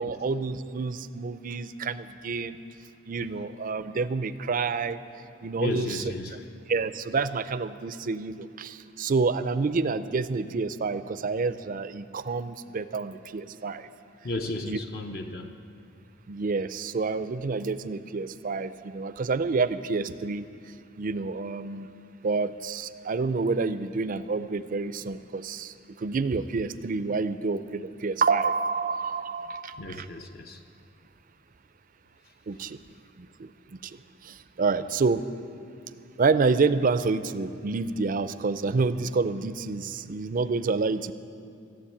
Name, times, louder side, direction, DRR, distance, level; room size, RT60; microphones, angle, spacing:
voice 1, 0.0-2.6 3.1-5.0 5.4-6.0 6.7-13.9 14.6-14.8 16.3-20.5 21.0-21.9 22.2-30.1 32.5-32.8 33.2-35.2 36.2-41.1, right 4 dB, 45° right, 13 dB, 0.5 m, -28 dB
voice 2, 5.6-6.4 14.2-15.5 29.8-30.6, left 2 dB, 50° left, 4 dB, 0.7 m, -34 dB
14.5 x 7.8 x 9.8 m, 2.5 s
head